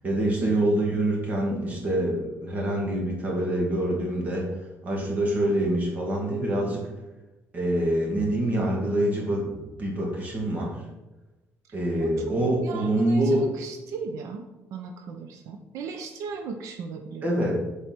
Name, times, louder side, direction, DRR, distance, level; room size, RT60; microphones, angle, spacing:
voice 1, 0.0-4.5 4.8-6.9 7.5-10.8 11.7-13.5 17.2-17.5, right 1 dB, 30° right, -2 dB, 2.2 m, -25 dB
voice 2, 12.6-14.4 14.7-17.5, right 5 dB, 85° right, 5 dB, 0.8 m, -37 dB
7.3 x 4.8 x 6.0 m, 1.1 s
cardioid pair, 175°, 5 cm